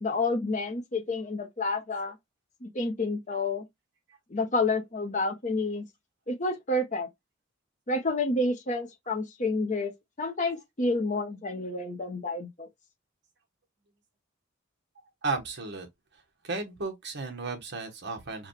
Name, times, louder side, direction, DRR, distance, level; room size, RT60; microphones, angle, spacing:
voice 1, 0.0-2.1 2.6-3.7 4.3-5.8 6.3-7.1 7.9-9.9 10.2-12.7, left 2 dB, 35° left, 0.8 m, -29 dB
voice 2, 15.2-15.9 16.4-18.5, right 3 dB, 55° right, 1.2 m, -34 dB
4.9 x 2.3 x 3.2 m
head